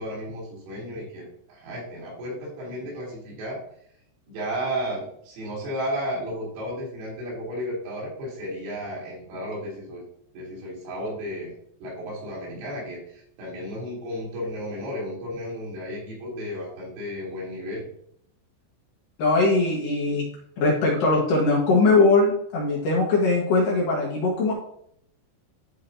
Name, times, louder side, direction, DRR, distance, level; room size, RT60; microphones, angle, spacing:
voice 1, 0.0-3.6 4.3-10.0 10.3-11.5 11.8-17.9, equal, 85° right, -5 dB, 5.8 m, -33 dB
voice 2, 19.2-20.2 20.6-24.5, left 3 dB, 60° left, -3 dB, 2.6 m, -21 dB
13.0 x 4.8 x 2.8 m, 0.67 s
omnidirectional pair, 5.5 m